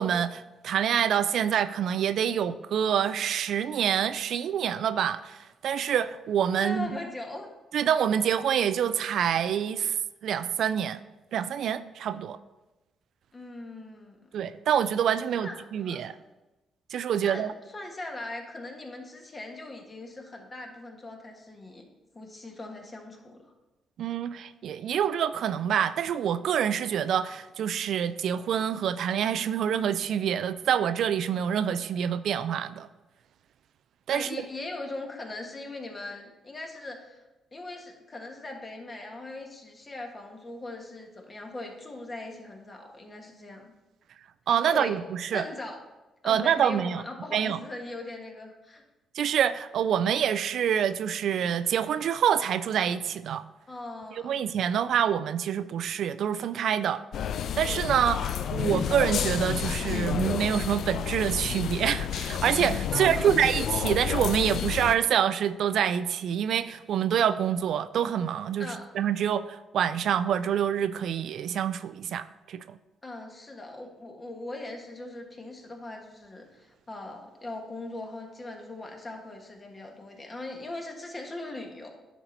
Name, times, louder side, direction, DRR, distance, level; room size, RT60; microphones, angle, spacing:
voice 1, 0.0-6.9 7.7-10.0 10.2-11.0 11.3-12.4 14.3-16.1 16.9-17.5 24.0-32.9 34.1-34.3 44.5-45.4 46.2-47.0 47.3-47.6 49.1-53.4 54.1-57.0 57.6-72.8, right 9 dB, 70° right, 14 dB, 0.3 m, -26 dB
voice 2, 6.6-7.5 13.3-14.3 15.3-16.1 17.1-21.9 22.1-23.4 34.1-37.2 37.5-43.7 44.7-44.9 45.3-45.8 46.2-48.8 53.7-54.4 62.9-63.3 68.6-68.8 73.0-81.9, left 2 dB, 30° left, 2 dB, 1.4 m, -40 dB
sound 1, 57.1-65.0, left 9 dB, 65° left, 0.4 m, -30 dB
10.0 x 4.1 x 4.4 m, 1.1 s
cardioid pair, 90°, 0 cm